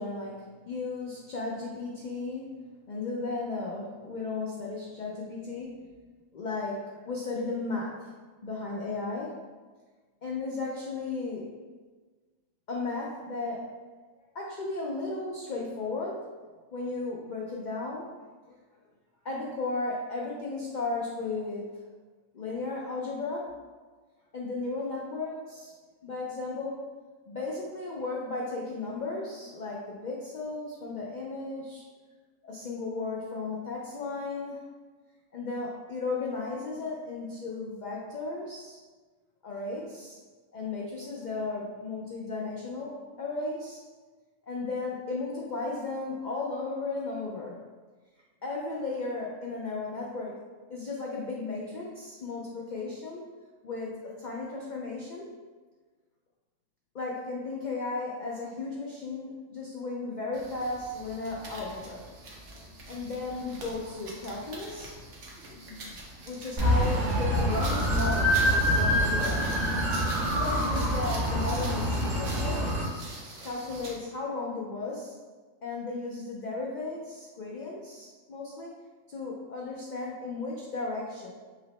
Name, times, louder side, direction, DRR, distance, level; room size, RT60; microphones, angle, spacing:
voice 1, 0.0-5.9 6.3-8.1 8.4-9.4 10.2-11.5 12.7-13.7 14.3-16.3 16.7-18.1 18.5-18.6 19.2-21.8 22.3-23.5 24.3-25.7 26.0-26.8 27.3-31.8 32.4-34.7 35.3-38.8 39.4-40.2 40.5-43.8 44.5-47.6 48.4-50.4 50.7-53.2 53.6-55.3 56.9-62.0 62.9-65.0 65.7-66.0 66.2-69.5 70.3-72.7 73.4-75.2 75.6-78.8 79.1-81.3, left 3 dB, 85° left, -3 dB, 0.4 m, -35 dB
sound 1, 60.3-74.1, right 2 dB, 70° right, 1.0 m, -44 dB
sound 2, 66.6-72.8, equal, 40° right, 1.4 m, -26 dB
5.3 x 2.0 x 3.0 m, 1.4 s
omnidirectional pair, 1.4 m